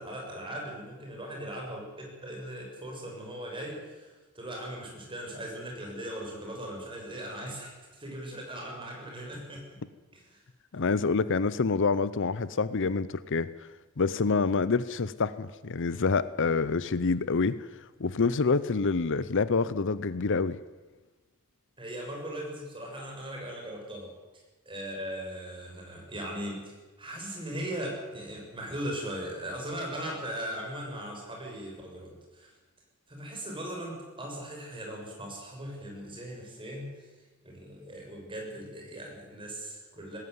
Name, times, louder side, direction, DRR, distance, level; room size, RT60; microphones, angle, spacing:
voice 1, 0.0-9.8 10.1-10.4 21.8-24.2 24.7-32.5 33.1-37.1 37.4-40.2, right 1 dB, 25° right, 0 dB, 6.9 m, -39 dB
voice 2, 10.7-13.5 14.0-17.6 18.0-20.6, left 4 dB, 55° left, 16 dB, 0.7 m, -27 dB
19.5 x 16.5 x 9.7 m, 1.3 s
head